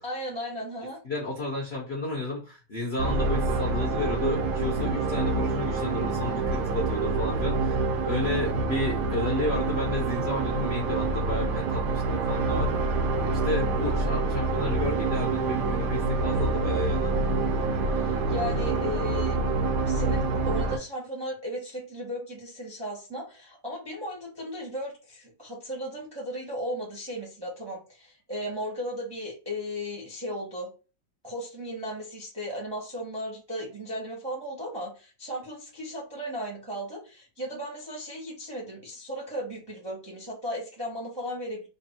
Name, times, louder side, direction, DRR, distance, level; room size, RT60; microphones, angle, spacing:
voice 1, 0.0-1.0 17.9-19.4 19.8-30.7 31.2-41.7, equal, 20° right, -2 dB, 0.7 m, -36 dB
voice 2, 1.0-12.7 13.2-17.1, left 2 dB, 45° left, -2 dB, 0.8 m, -32 dB
sound 1, 3.0-20.8, right 3 dB, 70° right, 1.1 m, -27 dB
3.4 x 2.6 x 4.2 m, 0.33 s
omnidirectional pair, 2.2 m